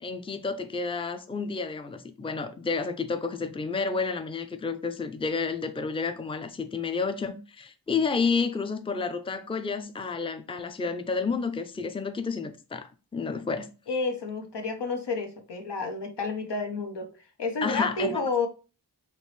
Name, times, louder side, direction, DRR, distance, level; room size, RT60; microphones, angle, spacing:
voice 1, 0.0-13.7 17.6-18.2, left 4 dB, 15° left, 0.5 m, -30 dB
voice 2, 13.9-17.1 17.4-18.5, left 3 dB, 80° left, 0.9 m, -30 dB
4.5 x 3.0 x 3.2 m
wide cardioid pair, 50°, 41 cm